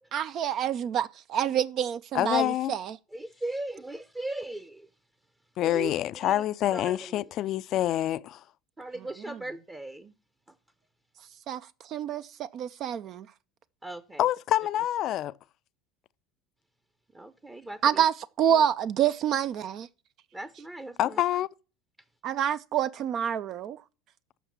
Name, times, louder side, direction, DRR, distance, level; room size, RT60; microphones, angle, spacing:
voice 1, 0.1-3.0 11.5-11.6 11.9-13.3 17.8-19.9 22.2-23.8, right 9 dB, 50° right, 0.4 m, -27 dB
voice 2, 2.1-2.7 5.6-8.4 14.2-15.3 21.0-21.5, left 13 dB, 50° left, 0.3 m, -26 dB
voice 3, 3.1-4.9 5.6-6.4 6.7-7.3 8.8-10.1 13.8-14.3 17.1-18.0 18.5-18.7 20.3-21.2, right 2 dB, 15° right, 0.7 m, -38 dB
7.2 x 5.7 x 7.1 m
hypercardioid pair, 85°, 0 cm